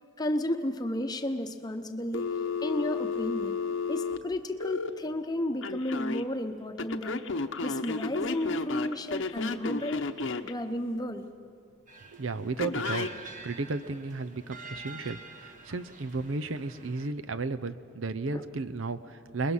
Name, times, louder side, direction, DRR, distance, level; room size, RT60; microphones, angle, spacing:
voice 1, 0.2-2.3 2.6-3.6 3.9-7.2 7.6-10.0 10.4-11.2 18.3-18.4, left 1 dB, 20° left, 6 dB, 0.9 m, -32 dB
Telephone, 2.1-4.9 5.6-6.2 6.8-10.5 12.6-13.1, left 4 dB, 70° left, 0.9 m, -32 dB
sound 1, 11.9-17.1, right 4 dB, 40° right, 1.3 m, -47 dB
voice 2, 12.1-13.1 13.4-19.5, right 3 dB, 80° right, 11 dB, 0.8 m, -34 dB
27.5 x 21.5 x 5.6 m, 2.3 s
head